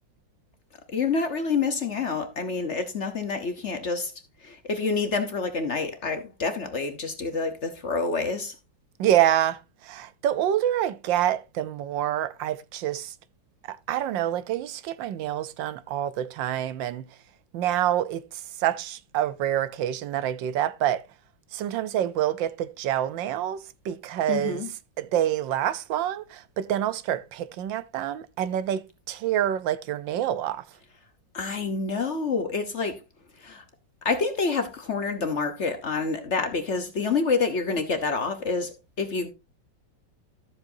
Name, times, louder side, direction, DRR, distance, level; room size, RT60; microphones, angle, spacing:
voice 1, 0.9-4.1 4.4-8.5 24.3-24.7 31.3-33.0 33.4-33.6 34.0-39.3, left 4 dB, 45° left, 1.1 m, -27 dB
voice 2, 9.0-9.6 9.8-13.1 13.7-17.0 17.5-21.0 21.5-24.6 25.0-30.6, right 11 dB, 80° right, 1.4 m, -27 dB
13.5 x 7.3 x 2.6 m
omnidirectional pair, 2.0 m